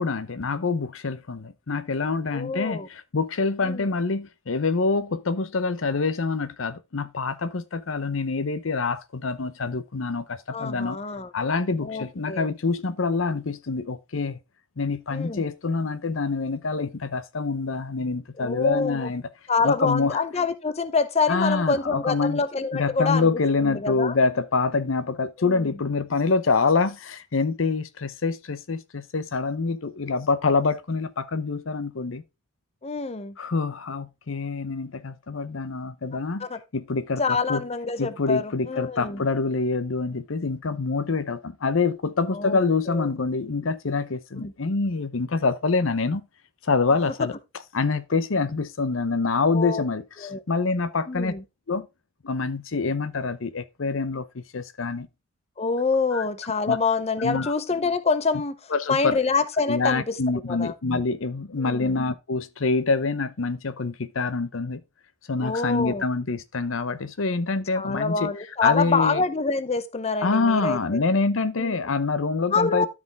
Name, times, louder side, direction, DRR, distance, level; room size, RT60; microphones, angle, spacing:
voice 1, 0.0-11.0 11.3-14.4 14.8-19.2 19.6-20.2 21.3-22.4 22.7-32.2 33.4-36.5 36.7-37.6 38.0-46.2 46.6-47.3 47.7-51.3 51.7-51.9 52.2-55.1 56.1-56.2 56.7-56.8 57.2-57.5 58.7-59.2 59.7-64.8 65.3-68.3 68.6-69.2 70.2-72.9, left 4 dB, 85° left, 0.8 m, -26 dB
voice 2, 2.3-2.9 3.6-3.9 10.5-11.3 11.8-12.5 15.1-15.4 18.4-19.1 19.5-23.3 23.6-24.1 25.4-25.7 32.8-33.4 36.4-36.6 37.2-39.3 42.3-42.6 42.9-43.1 44.4-44.5 49.5-49.9 50.2-50.4 51.1-51.4 55.6-58.6 58.9-60.2 60.5-60.7 61.6-62.0 65.4-66.0 67.7-71.0 71.6-71.8 72.5-72.9, left 4 dB, 30° left, 0.7 m, -26 dB
13.0 x 4.9 x 3.4 m
head